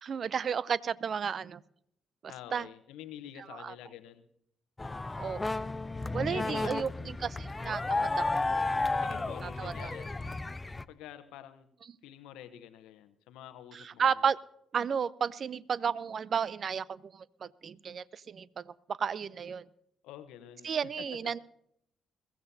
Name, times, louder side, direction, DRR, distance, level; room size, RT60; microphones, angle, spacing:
voice 1, 0.0-1.6 2.2-2.7 3.5-3.7 5.2-5.6 6.1-8.5 9.4-9.9 13.7-14.4 14.7-19.6 20.6-21.4, right 7 dB, 50° right, 21 dB, 0.5 m, -33 dB
voice 2, 2.3-4.3 6.3-6.9 8.9-10.3 10.9-11.7 12.0-14.0 20.0-21.3, left 11 dB, 75° left, 12 dB, 0.9 m, -47 dB
sound 1, 4.8-10.8, left 2 dB, 25° left, 0.6 m, -33 dB
22.0 x 15.0 x 2.7 m, 0.72 s
hypercardioid pair, 45°, 0 cm